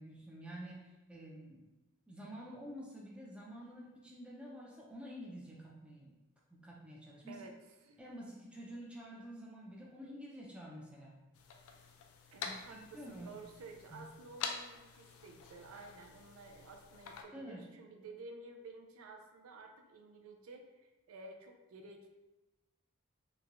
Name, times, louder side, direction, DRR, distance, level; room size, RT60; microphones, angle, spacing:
voice 1, 0.0-1.7 2.1-6.1 6.5-7.4 8.0-11.2 12.4-13.4 13.9-14.0 17.3-17.7, equal, 5° right, -4 dB, 0.4 m, -49 dB
sound 1, 11.3-17.2, left 5 dB, 80° left, 0.3 m, -47 dB
voice 2, 12.3-22.1, right 3 dB, 75° right, 4 dB, 0.4 m, -52 dB
3.0 x 2.2 x 2.4 m, 1.1 s
head